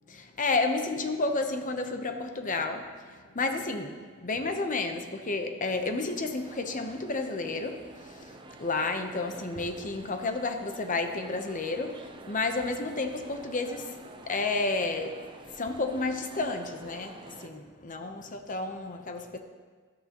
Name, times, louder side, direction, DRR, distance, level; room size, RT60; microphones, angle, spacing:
voice 1, 0.1-19.4, left 3 dB, 40° left, 6 dB, 0.8 m, -31 dB
sound 1, 5.7-17.5, right 2 dB, 25° right, 0.6 m, -48 dB
13.0 x 12.0 x 3.0 m, 1.5 s
head